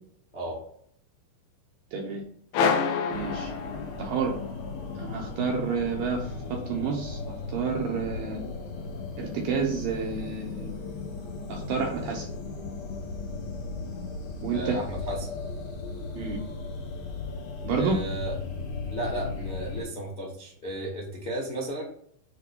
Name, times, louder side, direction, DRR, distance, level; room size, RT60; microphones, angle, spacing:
voice 1, 1.9-2.2 3.1-3.5 4.0-4.4 5.0-7.2 7.5-8.4 9.2-10.9 11.5-12.3 14.4-14.8 16.1-16.4 17.6-18.0, right 5 dB, 75° right, 0 dB, 2.2 m, -29 dB
sound 1, 2.5-4.3, left 6 dB, 85° left, 2.0 m, -27 dB
sound 2, 3.1-19.8, left 4 dB, 65° left, 3.3 m, -36 dB
voice 2, 14.5-15.3 17.8-18.3 18.9-21.8, right 1 dB, 45° left, -3 dB, 0.5 m, -34 dB
7.4 x 3.4 x 6.1 m, 0.63 s
omnidirectional pair, 5.1 m